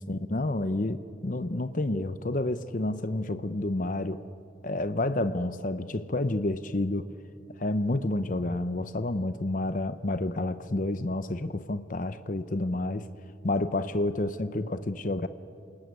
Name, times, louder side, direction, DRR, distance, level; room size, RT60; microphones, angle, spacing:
voice 1, 0.0-4.2 4.6-7.1 7.6-13.1 13.4-15.3, left 2 dB, 45° left, 11 dB, 0.8 m, -29 dB
28.0 x 19.5 x 9.5 m, 2.5 s
head